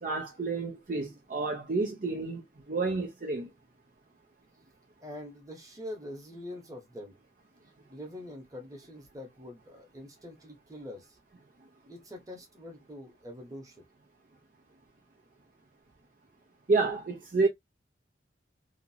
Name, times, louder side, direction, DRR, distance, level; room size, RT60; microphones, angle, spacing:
voice 1, 0.0-3.5 16.7-17.5, right 3 dB, 45° right, 0.5 m, -30 dB
voice 2, 5.0-7.1 7.9-11.2 11.9-13.8, left 1 dB, 20° right, 1.0 m, -44 dB
2.9 x 2.5 x 2.7 m
head